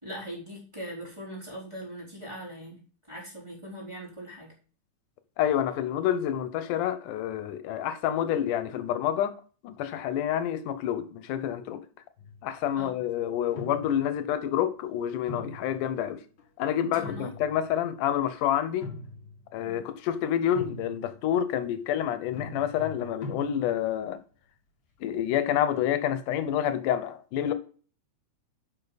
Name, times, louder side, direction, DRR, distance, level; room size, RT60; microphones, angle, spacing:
voice 1, 0.0-2.8 3.1-4.5 12.7-13.0 16.8-17.3 19.6-19.8, equal, 10° right, 4.0 m, -40 dB
voice 2, 5.4-9.3 9.6-11.8 12.4-16.2 16.6-18.9 19.5-24.2 25.0-27.5, left 10 dB, 85° left, 2.4 m, -28 dB
sound 1, 12.2-12.7 13.5-14.3 15.3-16.4 16.8-18.0 18.6-19.5 20.5-21.3 22.3-24.0, left 2 dB, 45° left, 2.2 m, -42 dB
10.5 x 5.8 x 4.1 m
omnidirectional pair, 3.5 m